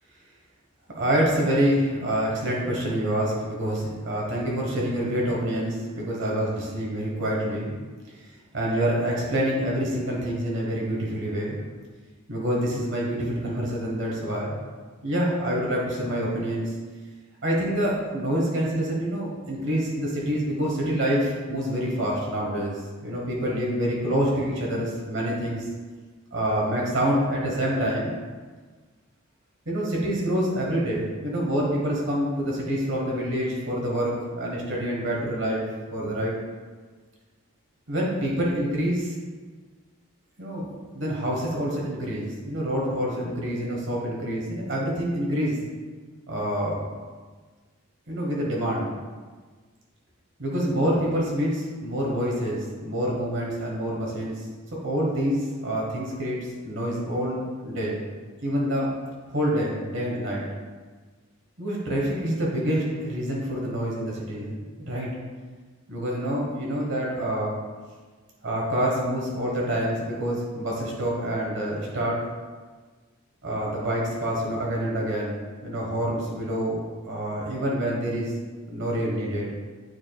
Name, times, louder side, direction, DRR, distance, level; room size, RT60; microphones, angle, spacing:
voice 1, 0.9-7.8 8.2-8.3 8.5-11.6 12.3-14.6 15.0-16.7 17.4-25.6 26.3-28.1 29.7-35.6 35.9-36.3 37.9-39.1 40.4-40.7 40.9-45.6 46.3-46.8 48.1-48.9 50.4-54.4 54.8-56.4 56.6-58.0 58.4-58.9 59.3-60.4 61.6-65.1 65.9-67.5 68.4-72.2 73.4-75.4 75.6-76.8 77.1-78.3 78.7-79.5, equal, 55° right, -3 dB, 1.2 m, -27 dB
8.9 x 4.8 x 2.3 m, 1.4 s
head